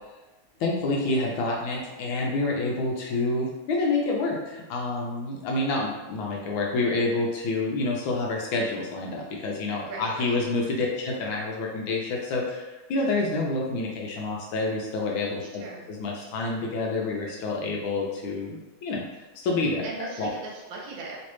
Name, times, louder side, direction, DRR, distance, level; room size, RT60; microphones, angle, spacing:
voice 1, 0.6-15.6 15.9-19.0 19.4-19.9 20.2-20.3, left 2 dB, 75° left, -1 dB, 1.3 m, -28 dB
voice 2, 9.8-10.4 15.6-15.9 19.8-21.2, right 3 dB, 70° right, -2 dB, 1.3 m, -38 dB
3.2 x 3.1 x 3.0 m, 1.1 s
omnidirectional pair, 2.4 m